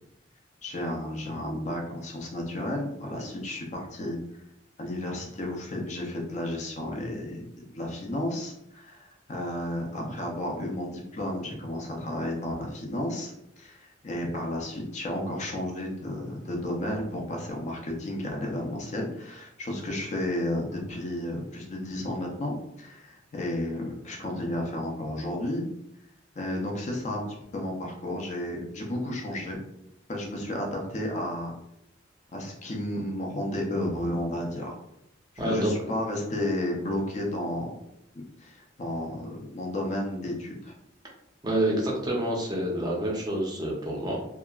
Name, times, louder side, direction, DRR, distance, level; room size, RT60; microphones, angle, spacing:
voice 1, 0.6-4.2 4.8-7.5 7.7-25.6 26.4-27.2 27.5-29.6 30.1-31.6 32.3-34.8 35.4-37.7 38.4-40.7, left 1 dB, 40° left, 0 dB, 0.5 m, -32 dB
voice 2, 35.4-35.7 41.4-44.2, right 1 dB, 20° right, -2 dB, 0.5 m, -27 dB
2.8 x 2.3 x 2.3 m, 0.80 s
head